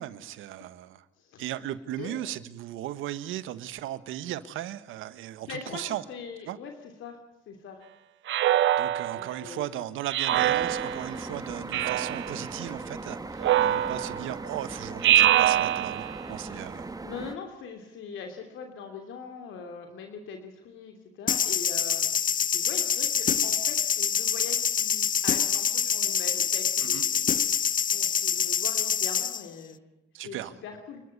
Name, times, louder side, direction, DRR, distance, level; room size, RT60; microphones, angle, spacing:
voice 1, 0.0-1.0 1.4-6.0 6.4-6.6 8.8-16.9 26.8-27.0 30.1-30.5, right 12 dB, 90° right, 14 dB, 1.4 m, -36 dB
voice 2, 5.4-7.2 7.5-7.8 9.1-9.8 17.0-22.1 22.5-27.3 27.9-29.8 30.2-31.0, left 6 dB, 80° left, 5 dB, 3.1 m, -42 dB
Speech synthesizer, 8.3-9.4 10.1-11.1 11.7-12.4 13.4-14.3 15.0-16.2, right 12 dB, 75° right, 0.8 m, -24 dB
sound 1, 10.3-17.4, right 3 dB, 20° right, 1.9 m, -39 dB
sound 2, 21.3-29.4, left 8 dB, 45° left, 0.7 m, -26 dB
29.0 x 12.5 x 9.6 m, 0.95 s
cardioid pair, 90°, 20 cm